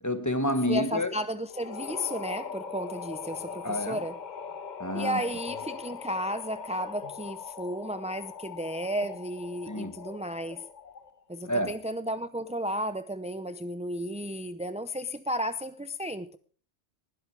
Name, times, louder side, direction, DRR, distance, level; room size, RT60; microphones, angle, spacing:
voice 1, 0.0-1.1 3.6-4.0 4.8-5.2 9.7-10.0 11.4-11.7, left 1 dB, 15° left, 1.5 m, -29 dB
voice 2, 0.7-4.2 4.9-10.6 11.3-16.4, equal, 10° right, 0.4 m, -33 dB
sound 1, 1.5-11.2, left 6 dB, 45° left, 0.8 m, -41 dB
20.0 x 12.0 x 4.7 m
omnidirectional pair, 1.2 m